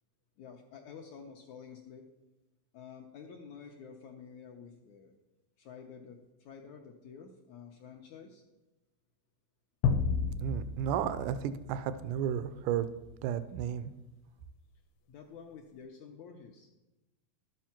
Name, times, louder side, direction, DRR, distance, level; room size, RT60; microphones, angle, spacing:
voice 1, 0.4-2.0 2.7-5.1 5.6-8.4 15.1-16.7, left 6 dB, 75° left, 1 dB, 1.8 m, -50 dB
sound 1, 9.8-12.4, left 5 dB, 90° left, 2.5 m, -32 dB
voice 2, 10.4-12.9 13.2-13.9, right 9 dB, 80° right, 12 dB, 1.9 m, -33 dB
12.0 x 7.5 x 5.9 m, 1.0 s
omnidirectional pair, 4.2 m